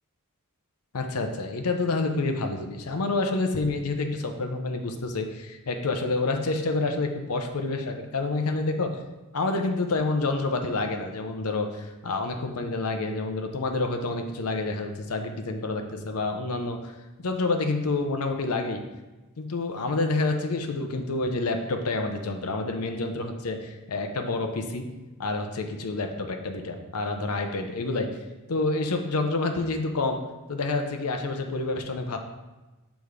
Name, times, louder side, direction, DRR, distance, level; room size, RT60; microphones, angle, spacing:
voice 1, 0.9-8.9 9.3-16.9 17.2-18.8 19.4-24.8 25.2-28.1 28.5-30.2 30.5-32.2, left 3 dB, 75° left, 5 dB, 0.7 m, -28 dB
6.2 x 3.5 x 4.9 m, 1.1 s
head